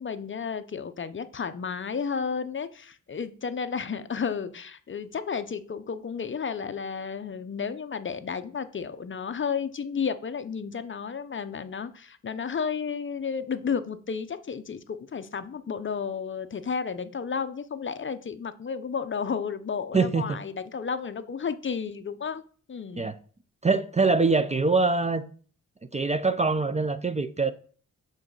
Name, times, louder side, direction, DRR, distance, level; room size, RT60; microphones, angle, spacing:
voice 1, 0.0-22.4 22.7-23.1, left 6 dB, 40° left, 0.5 m, -32 dB
voice 2, 19.9-20.4 23.0-23.2 23.6-25.2 25.9-27.5, right 3 dB, 20° right, 0.4 m, -24 dB
7.4 x 4.0 x 6.3 m
wide cardioid pair, 130°, 32 cm